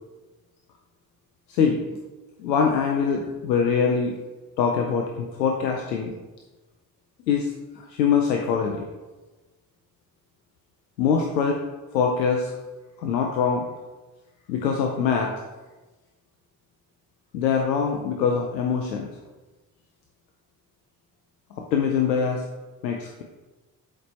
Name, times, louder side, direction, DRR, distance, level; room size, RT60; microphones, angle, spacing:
voice 1, 1.5-2.0 2.4-4.2 4.6-6.1 7.3-8.8 11.0-11.6 11.9-12.5 13.0-13.7 14.5-15.3 17.3-19.1 21.7-22.4 22.8-23.2, left 6 dB, 85° left, 1 dB, 0.6 m, -23 dB
7.8 x 3.3 x 4.2 m, 1.2 s
figure-of-eight pair, 45°, 49 cm